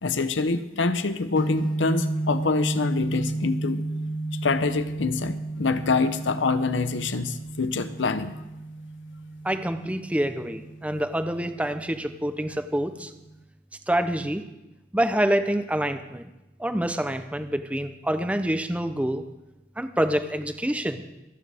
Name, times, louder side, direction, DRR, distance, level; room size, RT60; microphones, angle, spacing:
voice 1, 0.0-3.8 4.3-8.3, left 4 dB, 75° left, 12 dB, 0.7 m, -26 dB
sound 1, 1.4-13.4, right 2 dB, 45° left, 1.5 m, -33 dB
voice 2, 9.4-13.1 13.9-14.4 14.9-16.2 16.6-19.2 19.8-21.0, right 1 dB, 5° right, 9 dB, 0.6 m, -26 dB
26.5 x 8.9 x 3.5 m, 1.0 s
head